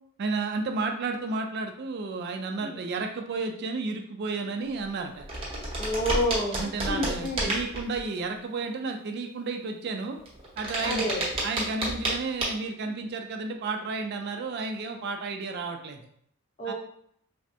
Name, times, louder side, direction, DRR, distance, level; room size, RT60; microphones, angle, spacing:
voice 1, 0.2-5.3 6.6-10.2 10.6-11.1 11.4-16.0 16.6-16.7, right 3 dB, 50° right, 4 dB, 0.3 m, -32 dB
sound 1, 4.8-4.9 5.2-8.0 10.2-12.1 12.4-12.5, right 1 dB, 25° right, 0.8 m, -30 dB
voice 2, 5.8-6.6 6.9-7.5 10.8-11.2 16.6-16.7, equal, 35° left, -2 dB, 0.7 m, -29 dB
3.3 x 2.1 x 2.7 m, 0.66 s
head